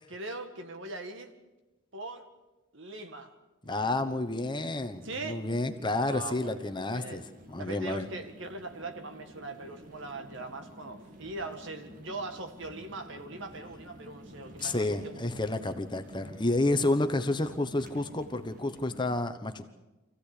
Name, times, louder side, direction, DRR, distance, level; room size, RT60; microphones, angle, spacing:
voice 1, 0.0-1.3 1.9-2.3 2.7-3.3 5.0-5.5 6.1-7.2 7.6-15.2, right 2 dB, 60° right, 7 dB, 1.9 m, -41 dB
sound 1, 3.6-19.2, equal, 40° right, 2.0 m, -51 dB
voice 2, 3.7-7.2 7.5-8.1 14.6-19.7, left 2 dB, 20° left, 8 dB, 1.0 m, -30 dB
25.5 x 15.5 x 8.4 m, 1.1 s
head